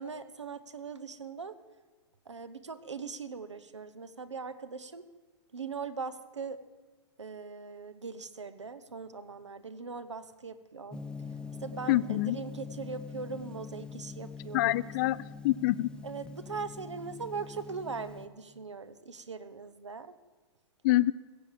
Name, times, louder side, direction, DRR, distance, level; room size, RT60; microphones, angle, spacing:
voice 1, 0.0-1.6 2.3-5.1 5.5-6.6 7.2-11.0 11.6-14.8 16.0-20.1, right 5 dB, 90° right, 12 dB, 0.9 m, -40 dB
Gong, 10.9-18.3, left 5 dB, 5° left, 0.7 m, -44 dB
voice 2, 11.9-12.4 14.5-15.2 15.4-15.9 20.8-21.1, left 16 dB, 45° left, 18 dB, 0.4 m, -25 dB
16.5 x 7.5 x 6.7 m, 1.4 s
hypercardioid pair, 115°, 15 cm